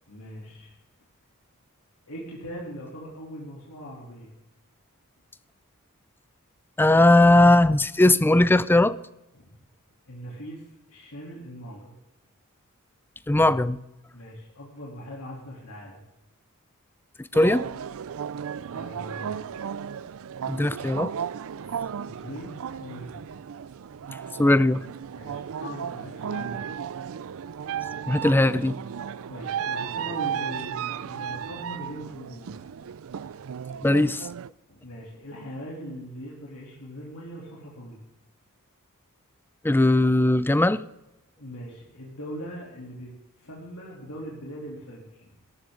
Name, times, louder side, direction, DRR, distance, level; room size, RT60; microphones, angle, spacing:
voice 1, 0.1-0.8 2.1-4.3 9.3-9.5 10.1-12.0 14.1-16.0 18.6-19.6 22.0-23.4 25.2-26.7 29.3-32.9 34.7-38.0 41.4-43.1 43.4-45.3, equal, 70° left, 3.2 m, -41 dB
voice 2, 6.8-9.0 13.3-13.8 17.2-17.7 20.5-21.1 24.4-24.9 28.1-28.8 33.8-34.3 39.6-40.8, left 1 dB, 10° left, 0.4 m, -19 dB
sound 1, 17.3-34.5, right 8 dB, 65° right, 0.4 m, -34 dB
17.0 x 14.0 x 3.9 m
head